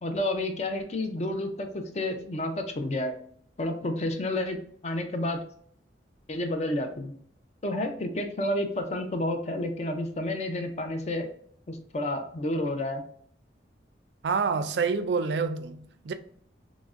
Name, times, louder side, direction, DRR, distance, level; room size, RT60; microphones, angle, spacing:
voice 1, 0.0-3.1 3.6-4.6 4.8-5.4 6.3-7.1 7.6-11.3 11.7-13.0, left 1 dB, 40° left, 0.5 m, -30 dB
voice 2, 14.2-16.1, right 5 dB, 75° right, 0.4 m, -27 dB
5.9 x 2.1 x 2.4 m
head